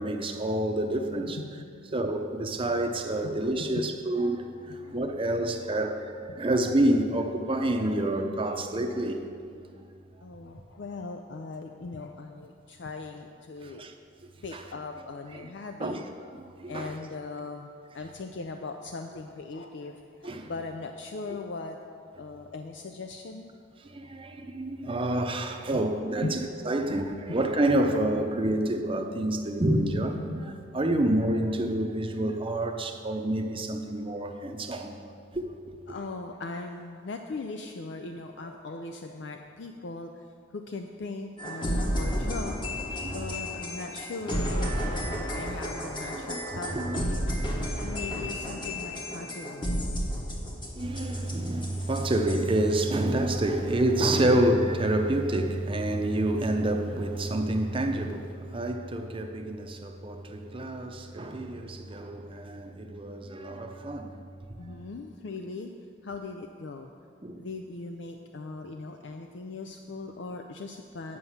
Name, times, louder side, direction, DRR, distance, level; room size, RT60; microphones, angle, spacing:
voice 1, 0.0-1.4 1.9-9.3 9.5-9.6 13.6-13.9 14.5-14.6 15.8-16.0 16.4-16.9 20.2-20.5 23.8-26.4 26.7-34.9 35.3-35.5 43.0-43.4 46.1-47.0 50.7-64.2 67.2-67.4, right 1 dB, 30° right, 5 dB, 0.7 m, -28 dB
voice 2, 1.3-1.7 2.2-2.3 3.2-3.9 4.7-5.1 6.3-6.5 10.2-13.9 14.4-16.0 16.7-17.7 17.9-21.8 22.2-23.5 24.0-24.4 25.7-25.8 26.2-26.4 35.9-40.3 40.5-42.6 43.0-49.6 49.9-50.1 64.6-65.7 66.0-66.9 67.3-71.2, left 3 dB, 70° left, 5 dB, 0.5 m, -39 dB
sound 1, 41.4-52.7, equal, 25° left, 1.3 m, -32 dB
9.7 x 5.5 x 7.2 m, 2.2 s
head